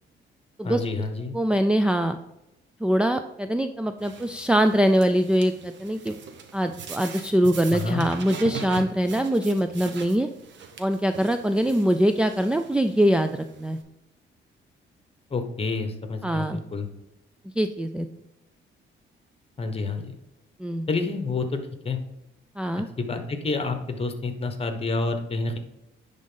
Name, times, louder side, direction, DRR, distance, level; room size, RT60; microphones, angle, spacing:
voice 1, 0.6-1.3 7.7-8.1 15.3-16.9 19.6-20.1 20.9-21.6 21.8-22.0 23.0-25.6, left 3 dB, 30° left, 7 dB, 1.2 m, -28 dB
voice 2, 1.3-2.2 2.8-6.2 6.5-10.3 10.8-13.8 16.2-16.6 17.6-18.1 20.6-20.9 22.6-22.9, equal, 5° right, 8 dB, 0.3 m, -23 dB
sound 1, 4.0-13.8, right 6 dB, 65° right, 1.1 m, -42 dB
10.0 x 3.8 x 3.9 m, 0.91 s
cardioid pair, 90°, 20 cm